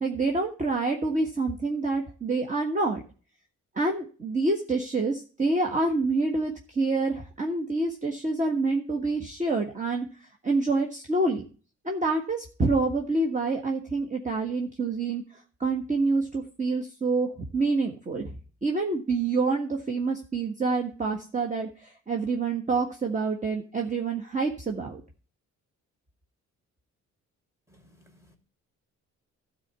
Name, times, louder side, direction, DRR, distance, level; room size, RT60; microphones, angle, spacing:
voice 1, 0.0-3.0 3.7-10.1 10.4-11.4 11.8-15.2 15.6-18.3 18.6-25.0, right 3 dB, 25° right, 1.5 m, -27 dB
voice 2, 27.7-28.4, left 1 dB, 10° right, 2.9 m, -59 dB
12.5 x 4.3 x 8.2 m
cardioid pair, 90°, 30 cm